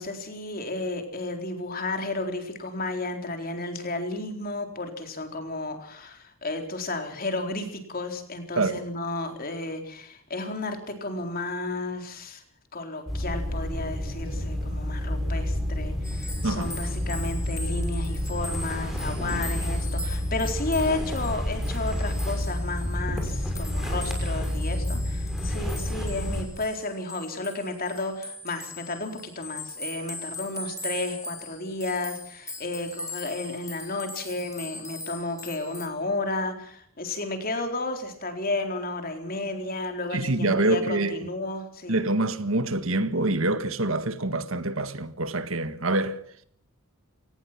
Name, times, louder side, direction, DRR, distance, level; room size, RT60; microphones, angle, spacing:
voice 1, 0.0-12.4 12.7-42.0, left 2 dB, 40° left, 4.0 m, -32 dB
sound 1, 13.1-26.4, left 1 dB, ahead, 6.0 m, -29 dB
sound 2, 16.0-35.9, left 2 dB, 15° left, 4.0 m, -41 dB
voice 2, 40.1-41.3 41.9-46.4, right 2 dB, 70° right, 1.7 m, -26 dB
24.5 x 19.0 x 6.0 m
head